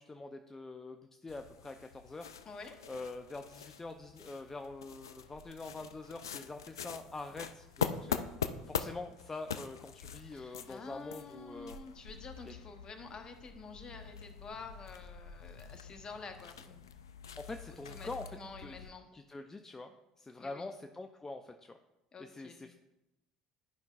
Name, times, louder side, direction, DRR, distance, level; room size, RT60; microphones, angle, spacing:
voice 1, 0.0-2.3 2.9-8.2 8.7-11.8 12.5-12.6 17.4-18.2 18.6-19.9 20.2-21.7 22.2-22.7, left 3 dB, 20° left, 6 dB, 0.5 m, -45 dB
sound 1, 1.3-18.9, left 7 dB, 85° left, 0.3 m, -43 dB
voice 2, 2.4-2.8 10.2-16.9 17.6-18.1 18.4-19.1 20.4-20.7 22.1-22.7, left 4 dB, 35° left, 6 dB, 1.1 m, -49 dB
11.5 x 5.3 x 2.5 m, 0.93 s
hypercardioid pair, 65°, 2 cm